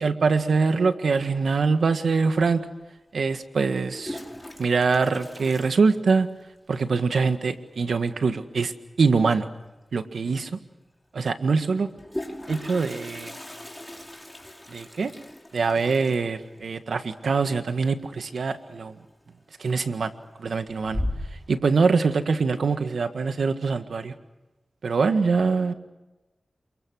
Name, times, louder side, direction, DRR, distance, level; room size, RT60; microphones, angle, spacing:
voice 1, 0.0-2.6 3.1-4.2 4.6-6.3 6.7-8.7 9.0-9.5 9.9-10.5 11.1-11.9 12.5-13.3 14.7-15.1 15.5-19.0 19.6-20.1 20.4-21.0 21.5-24.1 24.8-25.7, right 4 dB, 85° right, 8 dB, 1.7 m, -23 dB
Toilet flush, 2.4-2.5 3.7-6.5 6.8-6.9 7.2-7.3 7.5-7.9 9.7-9.8 10.1-10.2 11.7-18.4 18.7-19.2 19.6-20.1 20.5-21.5, left 1 dB, 15° left, 5.1 m, -37 dB
28.5 x 24.0 x 6.4 m, 1.1 s
cardioid pair, 50°, 0 cm